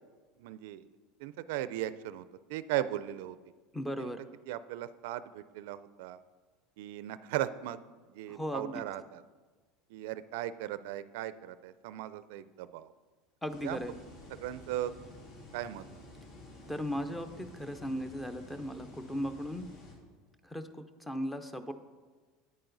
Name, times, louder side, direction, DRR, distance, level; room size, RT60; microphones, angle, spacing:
voice 1, 0.4-0.9 1.2-3.4 4.0-4.1 4.5-6.2 6.8-7.8 8.1-9.2 9.9-12.9 13.6-13.8 14.3-14.9 15.5-15.8, right 13 dB, 75° right, 15 dB, 0.4 m, -37 dB
voice 2, 3.7-4.2 8.3-8.8 13.4-14.0 16.7-19.7 20.4-21.7, equal, 5° left, 10 dB, 0.5 m, -37 dB
sound 1, 13.5-19.9, left 1 dB, 75° left, 2.7 m, -51 dB
9.7 x 8.8 x 3.9 m, 1.4 s
supercardioid pair, 150°, 0 cm